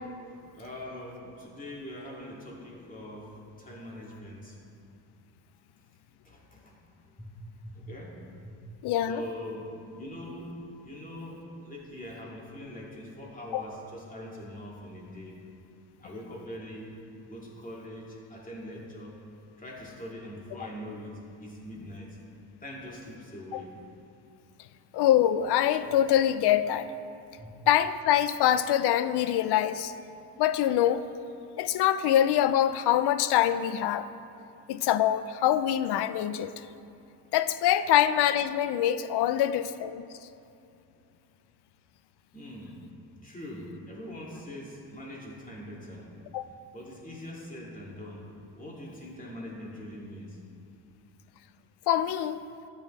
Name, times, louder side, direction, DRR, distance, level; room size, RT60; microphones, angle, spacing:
voice 1, 0.3-4.6 6.2-6.8 7.2-7.3 7.6-8.6 9.1-10.6 10.8-15.4 16.0-17.0 17.2-19.2 19.6-22.2 22.6-23.7 27.4-27.6 42.3-42.8 43.2-46.1 46.7-50.4, left 1 dB, 20° left, -4 dB, 2.6 m, -42 dB
voice 2, 8.8-9.2 13.5-13.6 23.5-23.6 24.9-26.9 27.7-29.9 30.4-31.0 31.6-34.1 34.7-36.5 37.3-40.0 46.3-46.5 51.9-52.4, left 11 dB, 65° left, 13 dB, 0.6 m, -24 dB
13.0 x 8.7 x 3.3 m, 2.7 s
cardioid pair, 85°, 42 cm